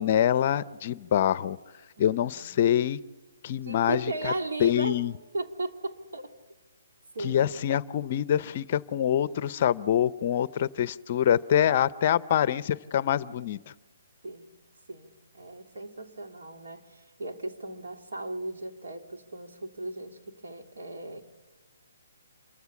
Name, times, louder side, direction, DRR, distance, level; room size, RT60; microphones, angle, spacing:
voice 1, 0.0-1.6 2.0-3.0 3.4-4.3 4.6-5.1 7.2-13.6, left 10 dB, 35° left, 17 dB, 0.6 m, -25 dB
voice 2, 2.0-2.8 3.6-5.0 5.3-6.3 7.1-7.5 14.2-14.5 14.9-21.2, right 2 dB, 80° right, 3 dB, 3.0 m, -36 dB
27.5 x 15.0 x 7.3 m, 1.2 s
hypercardioid pair, 165°, 0 cm